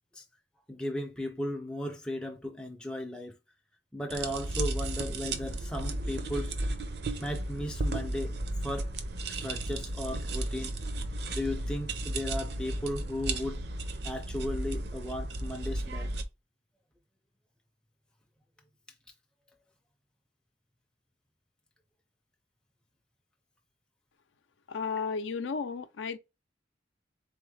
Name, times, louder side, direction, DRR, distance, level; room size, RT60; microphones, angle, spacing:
voice 1, 0.7-3.4 3.9-6.6 7.2-8.9 9.4-10.7 11.3-13.6 14.0-16.1, left 1 dB, 5° left, 0.4 m, -36 dB
sound 1, 4.1-16.2, right 2 dB, 60° right, 0.5 m, -34 dB
voice 2, 24.7-26.2, left 5 dB, 85° left, 0.5 m, -33 dB
3.8 x 3.6 x 3.1 m
head